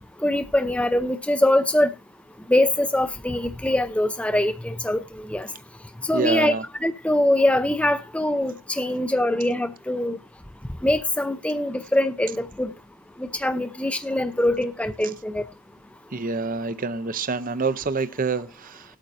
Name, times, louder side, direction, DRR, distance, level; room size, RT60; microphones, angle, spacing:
voice 1, 0.2-1.9 2.5-5.5 6.0-6.6 6.8-10.2 10.8-12.7 13.2-15.4, left 1 dB, 5° left, 0.6 m, -23 dB
voice 2, 6.1-6.6 16.1-18.8, right 4 dB, 40° right, 0.6 m, -26 dB
18.5 x 8.8 x 2.6 m
head